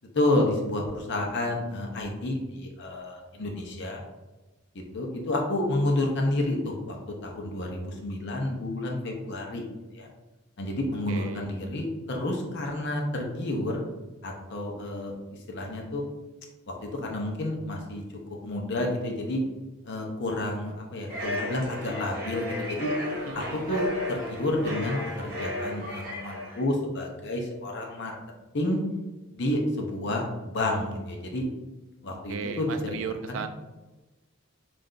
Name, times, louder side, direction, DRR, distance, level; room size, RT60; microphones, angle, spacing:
voice 1, 0.1-4.0 4.7-6.9 7.2-9.6 9.9-10.1 10.6-13.8 14.2-15.1 15.5-16.1 16.7-18.0 18.4-19.4 19.8-22.9 23.7-28.2 28.5-28.8 29.3-31.4 32.0-32.9 33.4-33.5, left 1 dB, 55° left, 0 dB, 0.7 m, -30 dB
voice 2, 11.1-11.5 23.3-23.7 32.1-33.5, right 6 dB, 65° right, 7 dB, 0.3 m, -36 dB
sound 1, 21.1-26.7, left 1 dB, 45° right, 1.1 m, -34 dB
3.3 x 2.5 x 3.8 m, 1.1 s
head